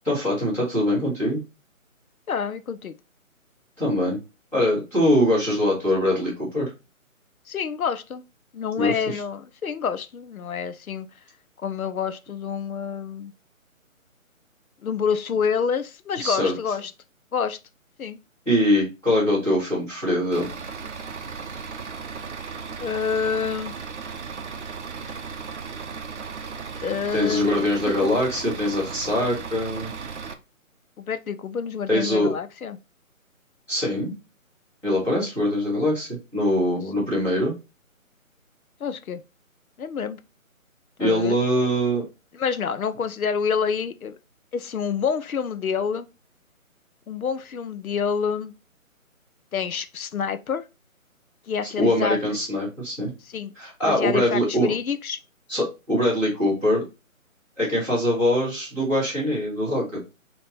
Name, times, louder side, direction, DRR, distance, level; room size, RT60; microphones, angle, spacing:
voice 1, 0.0-1.4 3.8-4.2 4.5-6.7 8.8-9.2 16.2-16.5 18.4-20.5 26.4-26.5 27.1-29.9 31.9-32.3 33.7-34.1 34.8-37.5 41.0-42.0 51.6-53.1 53.5-54.7 55.5-56.8 57.6-60.1, left 1 dB, 5° left, 1.1 m, -23 dB
voice 2, 2.3-2.9 7.5-8.2 8.5-11.1 11.6-13.3 14.8-16.9 17.3-17.6 18.0-18.2 22.8-23.7 26.8-27.5 28.0-28.1 31.0-32.8 38.8-39.2 39.8-40.2 41.0-41.4 42.3-44.2 44.5-46.1 47.1-48.5 49.5-50.6 51.5-52.2 53.3-53.5 53.8-55.2, left 6 dB, 85° left, 0.6 m, -27 dB
Bus / Idling, 20.3-30.3, right 5 dB, 55° right, 0.6 m, -36 dB
3.6 x 2.8 x 4.0 m
figure-of-eight pair, 155°, 42 cm